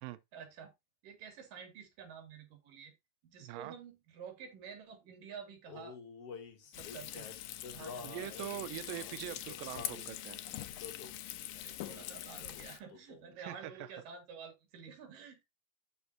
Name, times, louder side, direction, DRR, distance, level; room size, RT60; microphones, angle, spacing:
voice 1, 0.3-0.7 1.0-2.9 3.2-6.0 6.7-7.3 7.7-8.3 11.5-15.4, right 6 dB, 60° right, 4.0 m, -50 dB
voice 2, 3.4-3.7 8.0-10.4 13.4-13.7, right 14 dB, 85° right, 2.1 m, -43 dB
Male singing, 5.7-10.1 10.8-11.2 11.8-12.1 12.4-13.3, left 6 dB, 50° left, 1.9 m, -49 dB
Frying (food), 6.7-12.8, left 13 dB, 75° left, 2.2 m, -44 dB
12.5 x 5.2 x 2.7 m
omnidirectional pair, 4.6 m